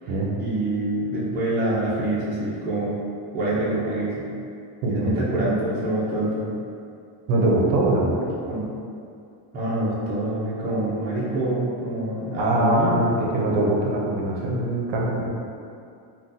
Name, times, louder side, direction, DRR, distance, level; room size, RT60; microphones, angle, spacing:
voice 1, 0.0-3.0 3.3-4.3 4.9-6.5 8.5-8.7 9.5-13.0, right 1 dB, 20° right, -8 dB, 0.5 m, -26 dB
voice 2, 4.8-5.2 7.3-8.3 12.4-15.3, right 1 dB, 65° right, -2 dB, 0.6 m, -22 dB
3.7 x 2.3 x 2.6 m, 2.5 s
cardioid pair, 165°, 47 cm